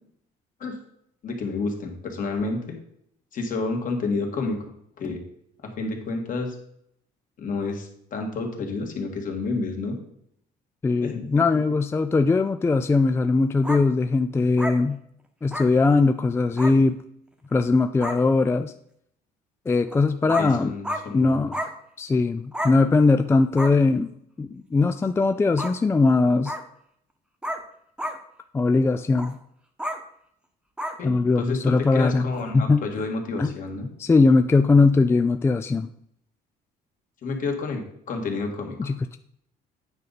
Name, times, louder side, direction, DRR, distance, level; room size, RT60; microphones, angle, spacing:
voice 1, 1.2-2.8 3.3-4.7 5.0-5.2 5.6-6.6 7.4-10.0 11.0-11.3 20.2-21.5 31.0-33.9 37.2-38.9, left 3 dB, 50° left, 2 dB, 1.8 m, -30 dB
voice 2, 10.8-15.0 15.4-17.0 17.5-18.7 19.7-20.7 21.1-21.6 22.0-24.1 24.4-26.5 28.5-29.4 31.0-32.3 32.5-32.8 33.4-33.5 34.0-35.9 38.8-39.2, left 3 dB, 15° left, 8 dB, 0.3 m, -20 dB
sound 1, 13.6-13.8 14.6-14.8 15.5-15.7 16.6-16.7 17.6-17.7 18.0-18.2 19.9-20.0 20.3-20.5 20.8-21.0 21.5-21.7 22.5-22.7 23.6-23.7 25.6-25.7 26.4-26.6 27.4-27.6 28.0-28.2 29.1-29.3 29.8-30.0 30.8-31.0 32.3-32.4, equal, 5° right, 1.0 m, -30 dB
9.2 x 5.2 x 4.1 m, 0.71 s
cardioid pair, 110°, 17 cm